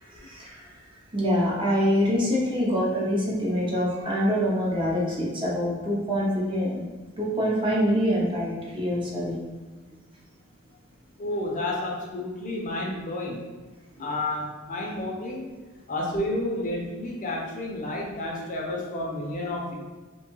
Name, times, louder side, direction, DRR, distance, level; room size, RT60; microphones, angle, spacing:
voice 1, 0.0-0.8 1.1-6.8 7.2-9.4 13.9-14.1, equal, 25° right, -5 dB, 0.6 m, -25 dB
voice 2, 11.2-13.4 14.0-15.5 15.9-19.7, left 1 dB, 40° left, -1 dB, 0.4 m, -30 dB
2.6 x 2.3 x 2.9 m, 1.3 s
head